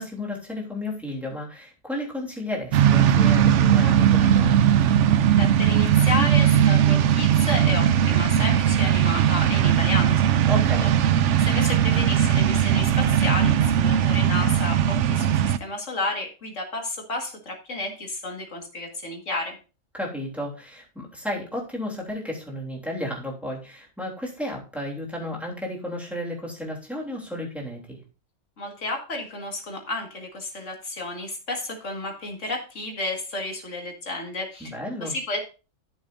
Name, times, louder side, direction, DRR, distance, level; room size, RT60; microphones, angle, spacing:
voice 1, 0.0-4.6 10.5-10.9 19.9-28.0 34.6-35.1, left 1 dB, ahead, -3 dB, 3.1 m, -33 dB
sound 1, 2.7-15.6, right 9 dB, 75° right, 0.9 m, -19 dB
voice 2, 5.3-10.4 10.8-10.9 11.4-19.6 28.6-34.7 35.0-35.4, left 2 dB, 75° left, 1 dB, 2.4 m, -32 dB
12.5 x 7.0 x 2.7 m, 0.33 s
omnidirectional pair, 1.3 m